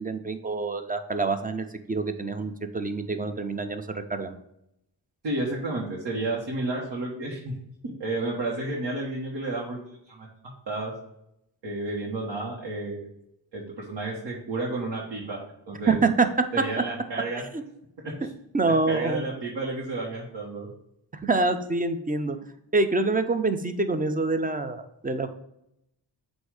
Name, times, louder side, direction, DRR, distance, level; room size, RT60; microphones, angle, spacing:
voice 1, 0.0-4.4 15.9-16.3 17.5-17.6 18.2-18.3 18.5-19.2 21.1-22.4 22.7-25.3, right 3 dB, 20° right, 8 dB, 0.5 m, -26 dB
voice 2, 5.2-7.5 7.8-9.8 10.1-10.3 10.7-10.9 11.6-13.1 13.5-15.4 15.7-16.0 16.5-17.4 18.9-20.7, right 2 dB, 75° right, -4 dB, 1.4 m, -31 dB
7.9 x 2.7 x 4.8 m, 0.81 s
wide cardioid pair, 105°, 43 cm